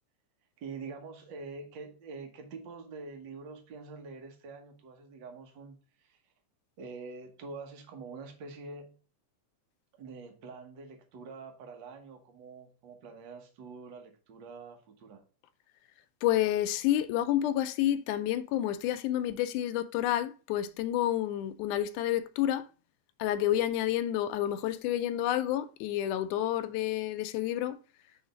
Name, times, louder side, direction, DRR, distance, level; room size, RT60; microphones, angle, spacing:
voice 1, 0.6-6.2 6.8-8.9 9.9-15.2, right 4 dB, 70° right, 1.0 m, -45 dB
voice 2, 16.2-22.7 23.2-27.8, left 12 dB, 80° left, 1.9 m, -29 dB
5.0 x 4.0 x 5.1 m
omnidirectional pair, 3.7 m